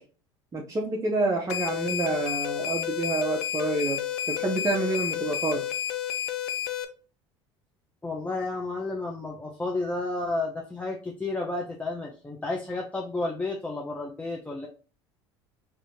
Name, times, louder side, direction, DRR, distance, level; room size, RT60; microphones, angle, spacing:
voice 1, 0.5-4.0 4.3-5.6, right 2 dB, 25° right, 0 dB, 0.8 m, -28 dB
sound 1, 1.5-6.8, left 10 dB, 75° left, 0.5 m, -31 dB
voice 2, 8.0-14.7, left 2 dB, 10° left, -1 dB, 0.7 m, -31 dB
4.8 x 2.7 x 2.7 m, 0.38 s
hypercardioid pair, 80°, 13 cm